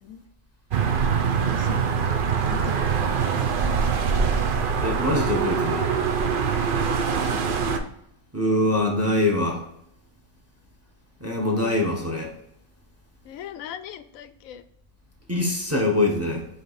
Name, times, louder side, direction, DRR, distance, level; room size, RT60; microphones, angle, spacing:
sound 1, 0.7-7.8, right 6 dB, 50° right, 0.6 m, -23 dB
voice 1, 1.2-1.8 2.4-3.0 7.3-7.4 13.2-14.6, left 9 dB, 75° left, 12 dB, 1.0 m, -39 dB
voice 2, 4.8-5.9 8.3-9.6 11.2-12.3 15.3-16.5, left 1 dB, 10° right, 1 dB, 1.0 m, -23 dB
7.9 x 3.2 x 4.1 m, 0.75 s
omnidirectional pair, 1.4 m